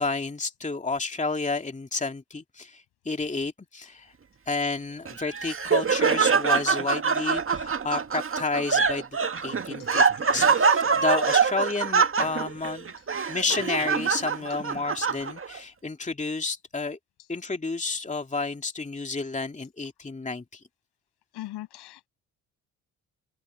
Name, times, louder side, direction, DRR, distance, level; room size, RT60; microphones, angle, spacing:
voice 1, 0.0-4.1 4.5-9.0 9.4-12.9 13.3-17.0 17.3-20.6, left 3 dB, 15° left, 2.5 m, -30 dB
Laughter, 5.1-15.6, right 5 dB, 30° right, 2.1 m, -24 dB
voice 2, 21.3-22.1, left 15 dB, 65° left, 7.5 m, -39 dB
open air
hypercardioid pair, 55°, 42 cm